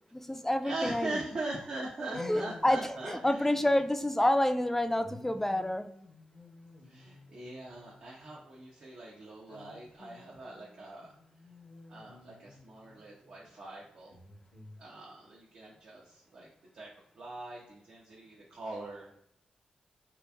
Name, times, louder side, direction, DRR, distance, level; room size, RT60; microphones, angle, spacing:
voice 1, 0.1-1.1 2.2-5.9, left 1 dB, 10° left, 8 dB, 0.3 m, -28 dB
voice 2, 0.6-3.7 6.8-11.1 11.9-14.2 14.8-16.5 16.7-19.1, right 2 dB, 70° right, -4 dB, 0.7 m, -41 dB
sound 1, 2.1-4.3 5.0-8.4 9.5-13.3 14.1-14.8, left 2 dB, 70° left, 0.7 m, -52 dB
2.9 x 2.5 x 2.3 m, 0.72 s
cardioid pair, 55°, 2 cm